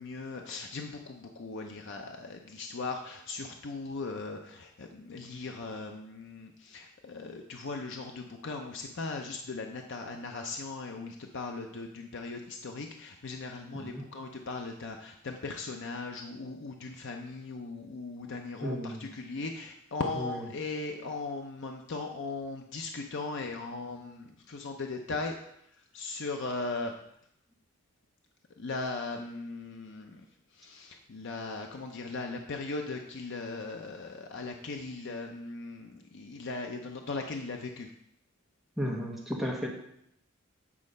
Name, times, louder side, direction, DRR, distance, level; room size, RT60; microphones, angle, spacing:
voice 1, 0.0-25.4 25.9-26.9 28.6-30.2 30.5-37.9, left 3 dB, 60° left, 3 dB, 0.6 m, -38 dB
voice 2, 18.6-19.1 20.2-20.4 38.8-39.7, equal, ahead, -2 dB, 1.1 m, -34 dB
8.6 x 4.2 x 5.3 m, 0.73 s
head